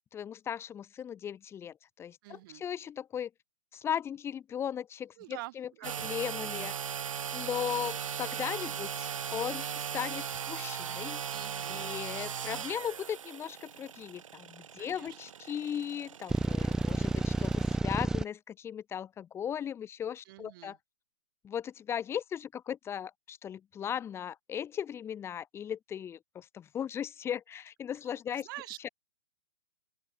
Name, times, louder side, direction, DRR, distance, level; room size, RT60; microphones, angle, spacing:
voice 1, 0.1-3.3 3.7-5.7 6.0-6.7 7.3-11.2 11.7-20.8 21.4-28.5 28.8-28.9, left 9 dB, 15° left, 1.5 m, -37 dB
voice 2, 2.2-2.6 5.2-6.1 11.3-11.9 14.8-15.2 20.2-20.8 28.3-28.9, right 19 dB, 40° right, 4.7 m, -46 dB
sound 1, 5.8-17.8, right 8 dB, 85° right, 0.4 m, -38 dB
sound 2, 16.3-18.2, right 2 dB, 5° right, 0.5 m, -30 dB
open air
hypercardioid pair, 135°, 16 cm